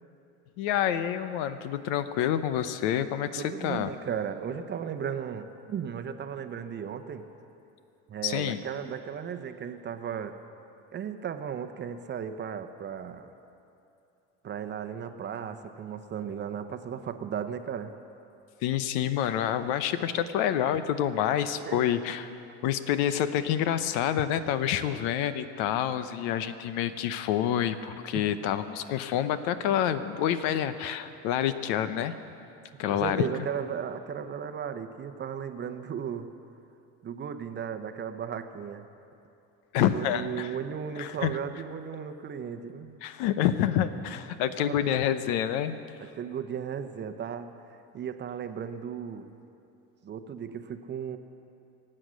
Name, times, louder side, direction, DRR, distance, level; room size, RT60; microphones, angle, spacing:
voice 1, 0.6-3.9 8.2-8.6 18.6-22.3 22.6-32.2 32.8-33.3 39.7-40.5 40.9-41.4 43.0-45.8, left 10 dB, 80° left, 12 dB, 0.9 m, -28 dB
voice 2, 3.4-7.3 8.1-10.3 10.9-13.3 14.4-17.9 21.6-21.8 32.9-36.3 37.0-38.9 39.8-43.0 44.6-45.0 46.1-49.3 50.0-51.2, right 7 dB, 30° right, 8 dB, 0.8 m, -35 dB
24.0 x 8.8 x 6.3 m, 2.8 s
cardioid pair, 135°, 35 cm